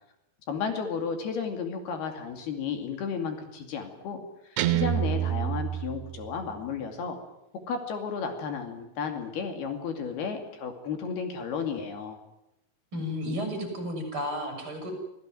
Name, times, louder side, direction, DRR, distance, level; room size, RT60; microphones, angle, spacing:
voice 1, 0.5-7.2 7.7-12.2, left 6 dB, 75° left, 5 dB, 4.5 m, -33 dB
Guitar, 4.6-6.6, right 12 dB, 85° right, 3.1 m, -28 dB
voice 2, 12.9-14.9, equal, 30° right, 5 dB, 7.5 m, -32 dB
25.5 x 16.5 x 9.2 m, 0.87 s
omnidirectional pair, 4.6 m